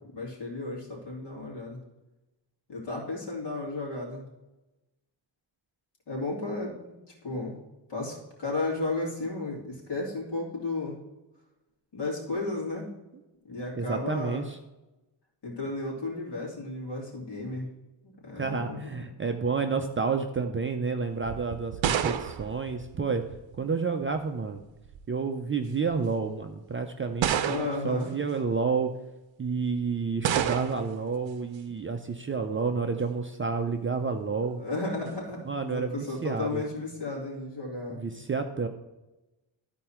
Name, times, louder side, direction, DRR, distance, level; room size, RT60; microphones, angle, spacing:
voice 1, 0.1-1.8 2.7-4.3 6.1-6.9 7.2-7.5 7.9-11.0 11.9-12.9 13.4-14.5 15.4-17.7 18.0-19.0 27.4-28.1 34.6-38.0, left 2 dB, 60° left, -4 dB, 3.0 m, -34 dB
voice 2, 13.7-14.6 18.4-23.2 23.6-24.6 25.1-28.9 29.4-34.6 35.4-36.6 37.9-38.7, right 5 dB, 30° right, 5 dB, 0.4 m, -30 dB
sound 1, 21.2-23.6 24.6-25.1 25.9-26.0 27.2-28.0 30.2-31.0, right 9 dB, 70° right, 0.7 m, -29 dB
12.5 x 4.6 x 4.3 m, 1.0 s
wide cardioid pair, 150°, 47 cm